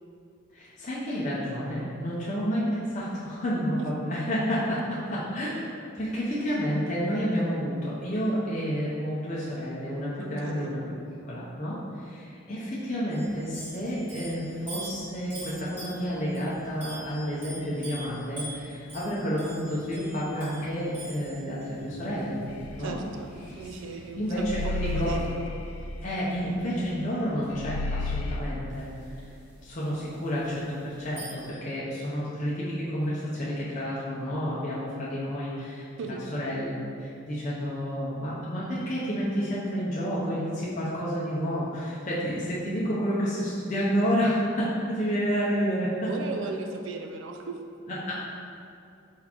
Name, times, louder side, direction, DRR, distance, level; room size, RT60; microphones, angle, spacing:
voice 1, 0.5-5.7 5.9-10.8 11.3-22.4 22.7-22.9 24.2-25.2 26.0-28.9 29.1-29.2 29.6-46.1 47.9-48.2, equal, 35° left, -8 dB, 0.6 m, -30 dB
voice 2, 10.2-10.8 22.8-25.5 36.0-36.3 46.1-47.6, right 3 dB, 65° right, 4 dB, 0.4 m, -36 dB
sound 1, 13.1-25.3 27.4-27.5 28.7-31.5, right 1 dB, 10° right, 1.4 m, -45 dB
sound 2, 22.5-23.9 24.3-27.2 27.5-28.4, left 3 dB, 80° left, 0.3 m, -33 dB
4.4 x 4.1 x 2.9 m, 2.6 s
head